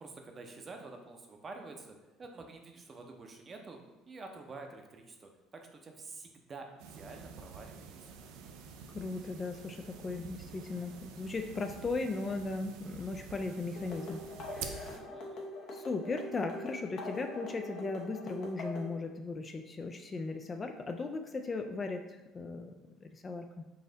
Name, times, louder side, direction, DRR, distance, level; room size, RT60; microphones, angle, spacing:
voice 1, 0.0-3.8 4.1-8.1 14.8-15.5, right 3 dB, 30° right, 3 dB, 0.6 m, -49 dB
sound 1, 6.8-15.0, right 6 dB, 80° right, 0.4 m, -48 dB
voice 2, 8.9-14.2 14.5-15.0 15.7-22.7 23.0-23.6, left 3 dB, 30° left, 5 dB, 0.3 m, -37 dB
sound 2, 13.8-18.9, left 1 dB, 60° left, 0.8 m, -43 dB
4.0 x 2.6 x 3.8 m, 1.0 s
supercardioid pair, 100°, 0 cm